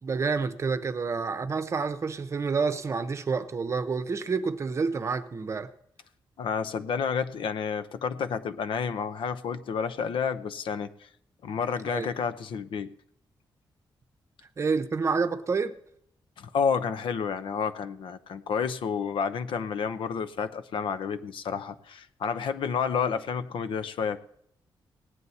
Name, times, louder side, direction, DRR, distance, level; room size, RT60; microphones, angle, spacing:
voice 1, 0.0-5.7 11.8-12.1 14.6-15.8, right 4 dB, 35° right, 0.7 m, -28 dB
voice 2, 6.4-10.9 11.4-12.9 16.4-24.2, left 6 dB, 80° left, 0.8 m, -30 dB
17.5 x 9.6 x 4.2 m
wide cardioid pair, 155°, 8 cm